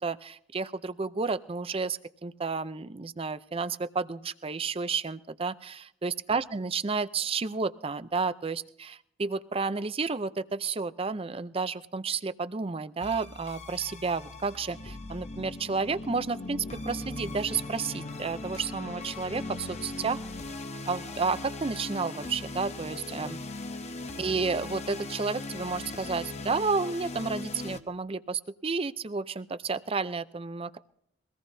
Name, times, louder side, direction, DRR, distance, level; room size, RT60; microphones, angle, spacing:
voice 1, 0.0-20.2 20.9-23.4 24.2-30.8, right 4 dB, 30° right, 14 dB, 0.5 m, -31 dB
sound 1, 13.0-27.8, left 2 dB, 35° left, 0.9 m, -39 dB
22.5 x 18.0 x 2.7 m, 0.72 s
head